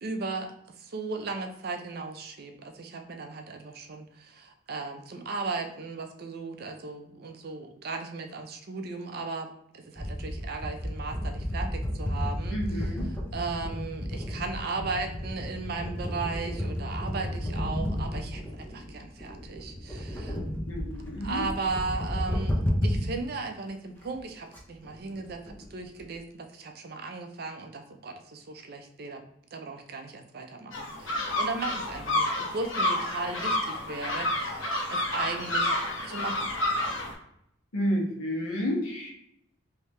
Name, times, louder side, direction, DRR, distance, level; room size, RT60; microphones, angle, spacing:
voice 1, 0.0-9.5 9.7-12.9 13.3-20.4 21.2-29.2 29.5-35.7 36.0-36.5, right 3 dB, 50° right, 5 dB, 0.4 m, -36 dB
sound 1, 10.0-23.2 23.7-23.8 24.0-24.2 24.5-24.6 24.8-26.2, equal, 10° left, 0.5 m, -32 dB
voice 2, 12.5-13.1 20.7-21.4 37.7-39.1, equal, 90° left, -2 dB, 1.1 m, -30 dB
sound 2, 30.7-37.1, left 1 dB, 65° left, 0.9 m, -29 dB
3.3 x 2.7 x 3.1 m, 0.74 s
head